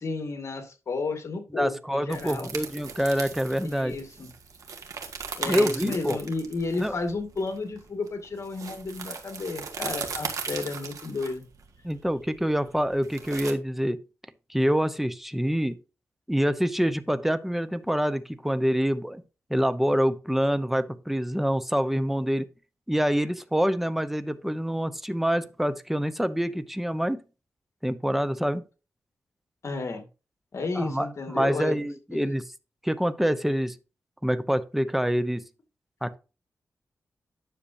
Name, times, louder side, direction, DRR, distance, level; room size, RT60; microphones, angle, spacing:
voice 1, 0.0-2.5 3.6-4.3 5.3-11.4 29.6-30.1 30.5-32.4, left 3 dB, 60° left, 2.1 m, -32 dB
voice 2, 1.5-3.9 5.5-6.2 6.8-6.9 11.8-14.0 14.5-15.8 16.3-19.2 19.5-22.5 22.9-27.2 27.8-28.6 30.7-32.4 32.8-33.8 34.2-35.4 36.0-36.2, equal, 5° right, 0.8 m, -26 dB
sound 1, 2.1-13.5, right 5 dB, 80° right, 1.6 m, -38 dB
10.0 x 6.7 x 2.7 m
cardioid pair, 75°, 6 cm